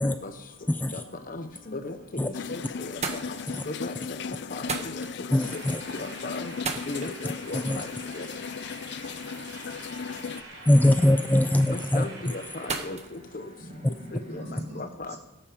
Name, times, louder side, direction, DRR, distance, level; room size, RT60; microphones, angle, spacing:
voice 1, 0.7-1.0 2.2-2.3 3.5-3.6 5.3-5.8 7.5-7.8 10.7-12.0, left 1 dB, 10° left, 9 dB, 0.4 m, -22 dB
voice 2, 1.3-3.0 3.7-3.9 4.5-5.0 5.9-6.5 6.9-7.9 8.1-8.3 11.7-13.0 13.3-13.4 14.1-14.4 14.7-15.2, left 2 dB, 45° left, 8 dB, 1.1 m, -36 dB
sound 1, 2.0-2.5 2.8-14.4, right 4 dB, 35° right, 1.3 m, -41 dB
sound 2, 2.3-10.4, left 5 dB, 65° left, 0.5 m, -37 dB
sound 3, 5.4-12.9, right 3 dB, 90° right, 4.5 m, -46 dB
voice 3, 13.6-15.2, equal, 60° right, -1 dB, 3.0 m, -42 dB
18.0 x 8.6 x 5.1 m, 0.96 s
head